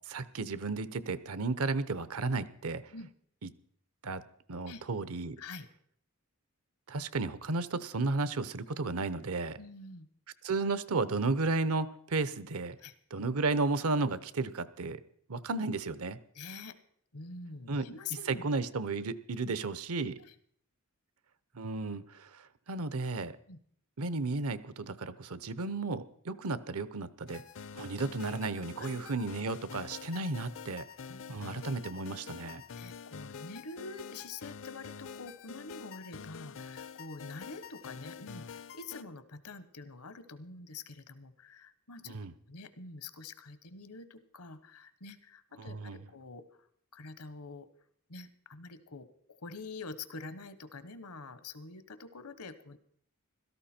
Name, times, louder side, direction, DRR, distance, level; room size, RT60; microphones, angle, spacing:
voice 1, 0.1-2.8 3.4-3.5 4.0-4.2 4.5-5.4 6.9-9.6 10.4-12.8 13.1-15.0 15.3-16.2 17.7-17.9 18.3-20.2 21.5-23.3 24.0-27.4 27.7-30.9 31.3-32.6 42.0-42.3 45.6-46.0, right 3 dB, 70° right, 15 dB, 0.8 m, -33 dB
voice 2, 9.6-10.1 12.8-12.9 16.3-16.8 17.1-18.5 20.3-20.4 23.1-23.6 28.8-28.9 31.1-31.4 32.8-42.1 42.5-46.4 46.9-47.7 48.1-52.8, left 3 dB, 80° left, 13 dB, 1.1 m, -46 dB
sound 1, 27.3-39.0, left 6 dB, 60° left, 0.5 m, -47 dB
16.5 x 13.5 x 4.4 m, 0.64 s
head